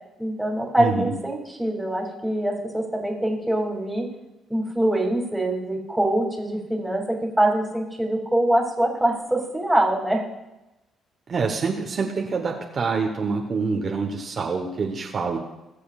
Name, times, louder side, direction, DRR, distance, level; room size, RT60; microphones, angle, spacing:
voice 1, 0.2-4.1 4.5-10.2, right 1 dB, 5° right, -1 dB, 2.7 m, -24 dB
voice 2, 0.8-1.1 11.3-15.4, right 4 dB, 50° right, 1 dB, 1.2 m, -26 dB
20.5 x 6.9 x 2.5 m, 0.99 s
supercardioid pair, 75°, 0 cm